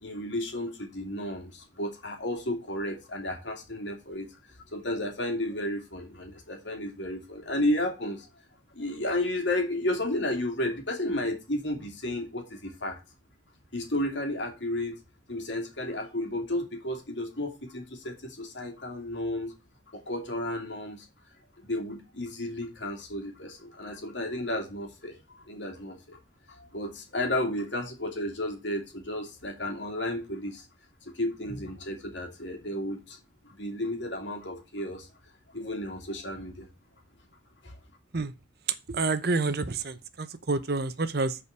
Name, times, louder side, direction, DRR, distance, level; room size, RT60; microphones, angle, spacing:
voice 1, 0.0-8.3 8.7-13.0 13.7-15.0 15.3-19.5 19.9-21.1 21.6-26.2 26.5-30.7 31.0-33.2 33.4-35.1 35.5-36.7 37.6-37.8, left 1 dB, 65° left, 2.7 m, -33 dB
voice 2, 38.9-41.4, right 3 dB, 55° right, 0.8 m, -28 dB
7.0 x 5.1 x 6.9 m
head